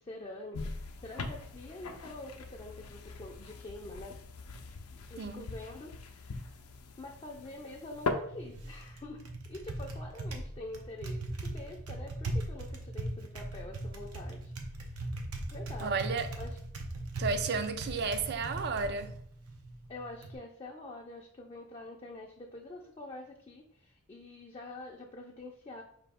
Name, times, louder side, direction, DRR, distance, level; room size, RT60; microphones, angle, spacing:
voice 1, 0.0-4.2 5.1-6.6 7.0-15.1 15.5-16.1 16.4-16.6 19.9-25.8, left 2 dB, 25° left, 0.4 m, -46 dB
sound 1, 0.5-8.1, left 3 dB, 80° left, 0.5 m, -41 dB
voice 2, 5.2-5.5 15.8-16.3 17.2-19.1, right 4 dB, 50° right, 0.4 m, -32 dB
Typing, 7.9-20.4, right 1 dB, 90° right, 0.7 m, -39 dB
5.0 x 2.7 x 3.5 m
head